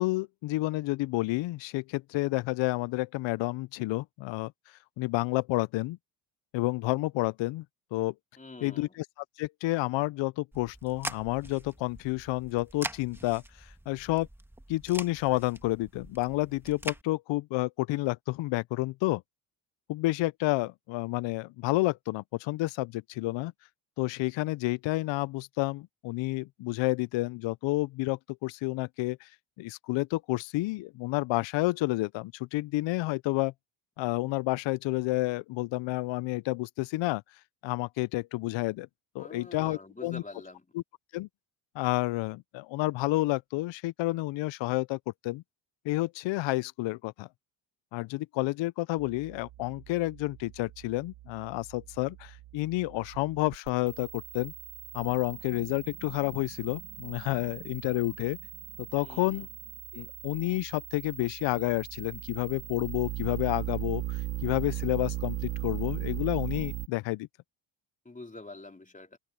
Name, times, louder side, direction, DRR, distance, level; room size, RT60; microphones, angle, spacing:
voice 1, 0.0-6.0 6.5-7.6 7.9-8.1 8.6-9.1 9.4-14.3 14.7-19.2 19.9-23.5 24.0-29.3 29.6-33.5 34.0-37.2 37.6-38.9 39.1-40.2 40.7-40.8 41.1-41.3 41.8-45.4 45.8-47.3 47.9-54.5 54.9-58.4 58.8-59.5 59.9-67.3, left 19 dB, 65° left, 0.5 m, -30 dB
voice 2, 8.4-9.0 39.2-40.7 59.0-59.5 68.1-69.2, left 2 dB, 15° left, 3.6 m, -46 dB
sound 1, 10.5-17.0, right 1 dB, 5° right, 1.7 m, -43 dB
sound 2, 49.0-66.9, right 15 dB, 90° right, 1.8 m, -39 dB
cardioid pair, 100°, 49 cm